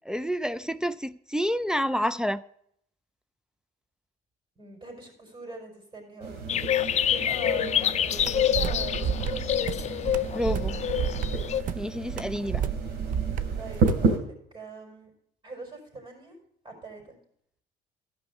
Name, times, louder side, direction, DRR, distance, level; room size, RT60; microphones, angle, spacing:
voice 1, 0.1-2.4 10.3-10.8 11.8-12.7, equal, 5° right, 0.4 m, -29 dB
voice 2, 4.5-6.5 7.1-9.6 13.6-15.1 15.4-16.4 16.6-17.2, right 4 dB, 30° right, 5.0 m, -42 dB
sound 1, 6.2-14.2, right 3 dB, 75° right, 3.0 m, -32 dB
sound 2, 6.5-11.6, left 10 dB, 40° left, 0.6 m, -27 dB
sound 3, 8.2-14.1, right 8 dB, 50° right, 0.7 m, -31 dB
13.5 x 5.5 x 8.2 m
cardioid pair, 110°, 17 cm